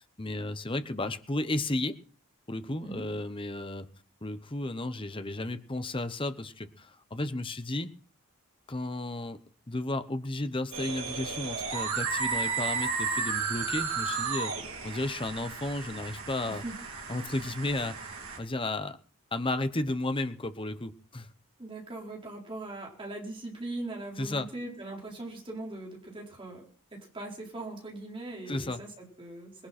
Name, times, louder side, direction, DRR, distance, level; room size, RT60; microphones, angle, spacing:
voice 1, 0.0-2.0 2.5-3.9 4.2-7.9 8.7-9.4 9.7-16.6 17.1-19.0 19.3-21.3 24.2-24.5 28.5-28.8, left 2 dB, 25° left, 10 dB, 1.0 m, -33 dB
sound 1, 10.7-18.4, right 5 dB, 65° right, 3.2 m, -33 dB
voice 2, 21.6-26.6 26.9-29.7, right 2 dB, 25° right, -1 dB, 4.6 m, -40 dB
20.5 x 11.5 x 4.4 m, 0.41 s
head